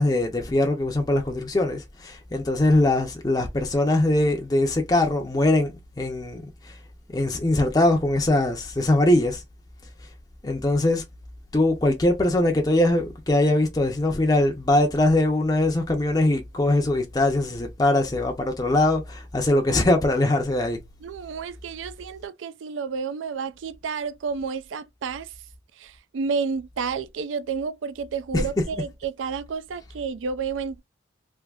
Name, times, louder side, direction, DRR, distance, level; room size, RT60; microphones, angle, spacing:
voice 1, 0.0-6.8 7.1-9.4 10.4-11.0 11.5-20.8 28.3-28.5, left 1 dB, 20° left, 0.5 m, -22 dB
voice 2, 21.0-25.3 25.8-30.8, right 5 dB, 85° right, 0.4 m, -30 dB
3.4 x 2.6 x 2.3 m
head